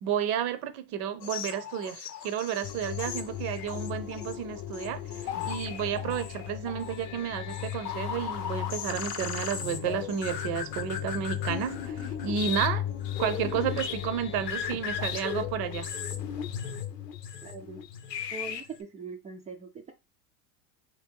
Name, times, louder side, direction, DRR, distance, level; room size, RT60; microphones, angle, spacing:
voice 1, 0.0-12.9 13.2-15.9, right 9 dB, 50° right, 0.7 m, -32 dB
sound 1, 1.2-18.8, left 8 dB, 85° left, 0.7 m, -38 dB
sound 2, 2.6-18.1, left 11 dB, 35° left, 0.6 m, -38 dB
voice 2, 17.4-17.8 18.3-19.9, right 4 dB, 15° right, 0.4 m, -41 dB
2.9 x 2.6 x 3.5 m
hypercardioid pair, 95°, 48 cm